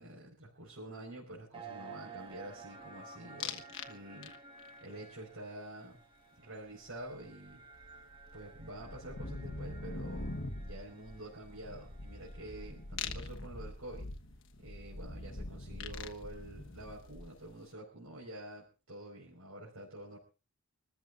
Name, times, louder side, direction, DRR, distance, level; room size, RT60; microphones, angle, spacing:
voice 1, 0.0-4.3 4.8-6.0 6.4-7.6 8.3-14.1 14.6-20.2, right 1 dB, 80° right, -3 dB, 5.0 m, -48 dB
sound 1, 1.5-12.9, right 4 dB, 25° right, 1.2 m, -54 dB
sound 2, 3.4-3.9 4.2-4.7 7.1-7.2 7.5-17.5, left 3 dB, 60° left, 1.2 m, -43 dB
26.0 x 14.0 x 2.5 m, 0.32 s
head